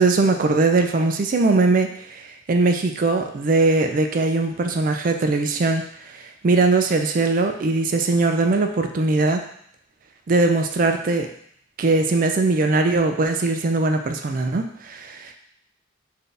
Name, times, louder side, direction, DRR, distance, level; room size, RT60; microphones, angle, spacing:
voice 1, 0.0-2.2 2.5-5.8 6.4-9.4 10.3-11.3 11.8-15.3, right 3 dB, 40° right, 5 dB, 0.3 m, -20 dB
4.1 x 2.7 x 3.3 m, 0.67 s
head